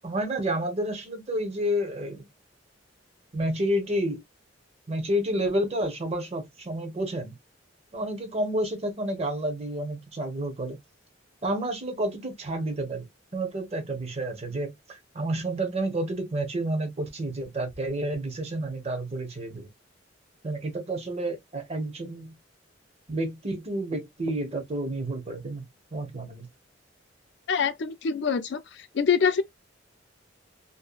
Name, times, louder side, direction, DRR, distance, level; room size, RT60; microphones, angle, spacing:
voice 1, 0.0-2.3 3.3-4.2 4.9-7.3 7.9-10.8 11.4-13.1 13.3-19.7 20.4-22.4 23.1-25.6 25.9-26.5, right 1 dB, 35° right, 0.7 m, -30 dB
voice 2, 27.5-28.6 28.9-29.4, left 6 dB, 65° left, 0.4 m, -24 dB
2.7 x 2.1 x 2.4 m
head